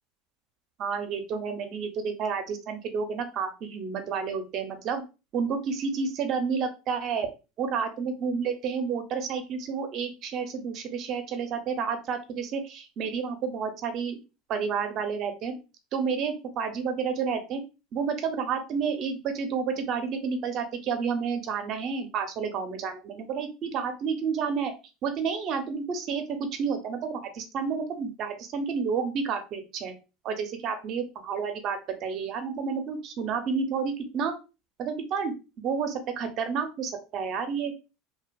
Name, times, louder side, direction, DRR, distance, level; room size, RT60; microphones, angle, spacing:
voice 1, 0.8-5.0 5.3-7.3 7.6-14.2 14.5-15.5 15.9-17.6 17.9-24.7 25.0-29.9 30.2-34.3 34.8-37.7, right 6 dB, 50° right, 6 dB, 0.6 m, -30 dB
2.5 x 2.3 x 2.2 m, 0.29 s
supercardioid pair, 105°, 0 cm